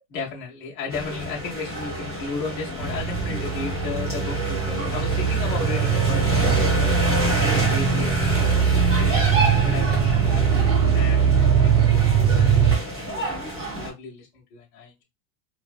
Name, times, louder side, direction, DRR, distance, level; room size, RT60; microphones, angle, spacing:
voice 1, 0.1-9.2 9.6-10.5 10.9-13.3 13.7-15.0, left 4 dB, 35° left, -3 dB, 0.5 m, -35 dB
sound 1, 0.9-13.9, equal, 20° right, 0.3 m, -28 dB
sound 2, 2.8-12.8, right 8 dB, 80° right, 0.7 m, -21 dB
2.6 x 2.0 x 2.4 m, 0.22 s
supercardioid pair, 180°, 48 cm